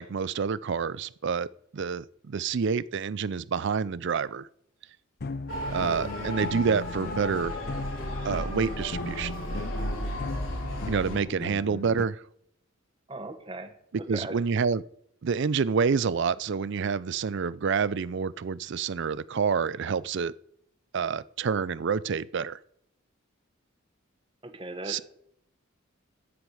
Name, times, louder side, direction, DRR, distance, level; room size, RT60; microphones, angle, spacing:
voice 1, 0.0-4.5 5.7-7.6 8.2-9.3 10.9-12.2 13.9-14.8 15.2-20.3 20.9-22.6 24.9-25.0, right 6 dB, 60° right, 0.4 m, -28 dB
sound 1, 5.2-12.0, left 3 dB, 50° left, 0.6 m, -38 dB
Motor vehicle (road) / Siren, 5.5-11.2, left 1 dB, 70° left, 3.4 m, -34 dB
voice 2, 13.1-13.7 14.1-14.3 24.4-25.0, right 2 dB, 25° right, 1.2 m, -38 dB
13.0 x 9.4 x 4.9 m
head